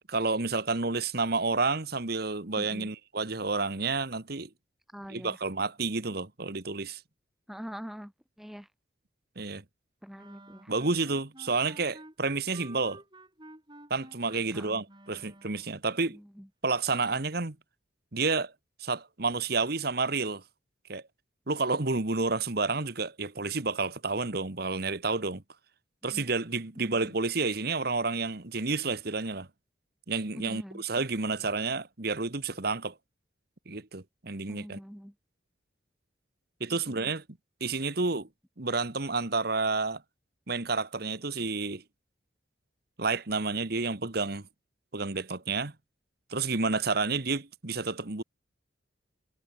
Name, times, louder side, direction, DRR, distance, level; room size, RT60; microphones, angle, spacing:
voice 1, 0.1-4.5 5.1-7.0 9.3-9.6 10.7-13.0 13.9-16.2 16.6-17.5 18.1-18.5 18.8-20.4 20.9-21.0 21.5-25.4 26.0-29.5 30.1-32.9 33.7-34.8 36.6-37.2 37.6-38.3 38.6-40.0 40.5-41.8 43.0-44.4 44.9-45.7 46.3-48.2, right 3 dB, 55° right, 1.5 m, -30 dB
voice 2, 2.6-2.9 4.9-5.4 7.5-8.1 8.4-8.7 10.0-10.7 14.5-14.8 16.1-16.5 26.0-26.3 26.8-27.1 30.3-30.8 34.5-35.1 36.7-37.1, equal, ahead, 1.0 m, -44 dB
sound 1, 10.1-15.8, right 2 dB, 25° right, 6.8 m, -51 dB
head